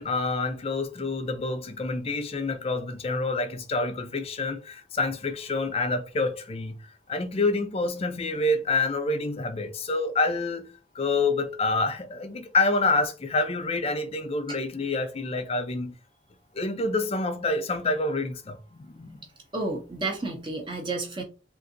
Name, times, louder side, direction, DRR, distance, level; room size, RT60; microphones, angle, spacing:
voice 1, 0.0-6.8 7.1-15.9 16.5-19.2, left 3 dB, 30° left, 0.5 m, -27 dB
voice 2, 19.5-21.2, right 2 dB, 25° right, 0.6 m, -31 dB
3.7 x 2.6 x 2.6 m
head